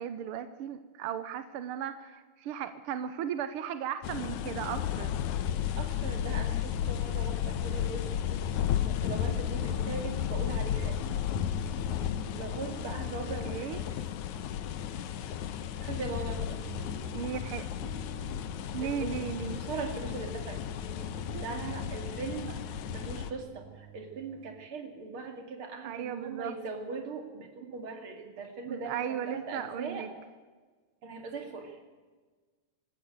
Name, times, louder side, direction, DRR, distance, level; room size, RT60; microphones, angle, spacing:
voice 1, 0.0-5.1 13.4-13.8 17.1-17.9 18.7-19.6 25.8-26.5 28.7-30.1, right 9 dB, 70° right, 11 dB, 1.3 m, -36 dB
sound 1, 4.0-23.3, left 10 dB, 75° left, 2.3 m, -33 dB
voice 2, 5.8-11.0 12.4-14.0 15.8-16.6 18.8-19.2 19.5-22.5 22.9-30.1 31.0-31.8, right 4 dB, 45° right, 4 dB, 3.0 m, -40 dB
sound 2, 11.4-24.7, right 11 dB, 90° right, 2.4 m, -50 dB
25.0 x 13.0 x 8.1 m, 1.4 s
omnidirectional pair, 3.5 m